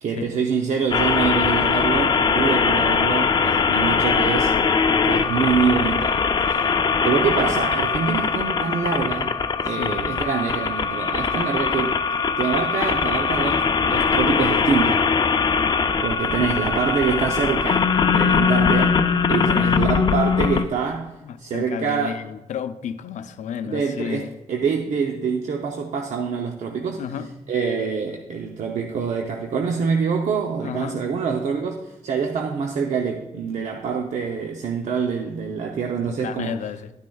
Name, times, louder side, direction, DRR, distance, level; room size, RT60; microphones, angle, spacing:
voice 1, 0.0-4.6 5.0-6.2 6.5-6.7 7.0-9.3 9.6-12.0 12.4-15.0 16.0-19.0 19.3-22.2 23.6-27.0 27.5-36.6, right 6 dB, 80° right, 0.7 m, -25 dB
sound 1, 0.9-20.7, left 5 dB, 35° left, 0.4 m, -21 dB
voice 2, 21.2-24.3 27.0-27.3 30.6-31.0 36.0-36.9, left 8 dB, 90° left, 0.5 m, -32 dB
11.5 x 9.4 x 2.3 m
wide cardioid pair, 125°, 12 cm